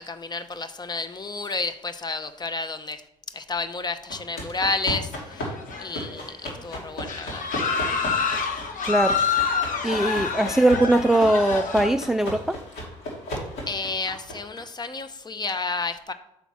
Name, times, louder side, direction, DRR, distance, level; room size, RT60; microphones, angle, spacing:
voice 1, 0.0-3.0 3.3-5.5 5.8-7.5 13.7-16.1, left 3 dB, 25° left, 10 dB, 0.7 m, -31 dB
sound 1, 4.1-14.6, equal, 75° left, 2.5 m, -36 dB
sound 2, 5.3-6.2 6.5-6.6 7.0-11.9, left 6 dB, 55° left, 1.1 m, -27 dB
voice 2, 8.9-9.2 9.8-12.6, right 1 dB, 5° right, 7 dB, 0.3 m, -21 dB
5.8 x 4.0 x 6.1 m, 0.84 s
hypercardioid pair, 60°, 16 cm